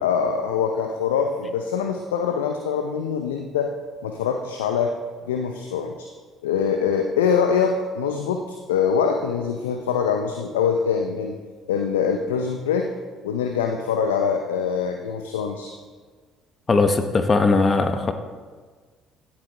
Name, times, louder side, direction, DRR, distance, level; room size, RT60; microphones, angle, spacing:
voice 1, 0.0-3.7 4.0-5.0 5.3-6.1 6.4-11.4 11.7-12.9 13.2-15.7, left 6 dB, 80° left, 5 dB, 0.6 m, -24 dB
voice 2, 16.7-18.1, left 3 dB, 35° left, 7 dB, 1.0 m, -19 dB
16.0 x 8.3 x 3.3 m, 1.5 s
figure-of-eight pair, 50°, 0 cm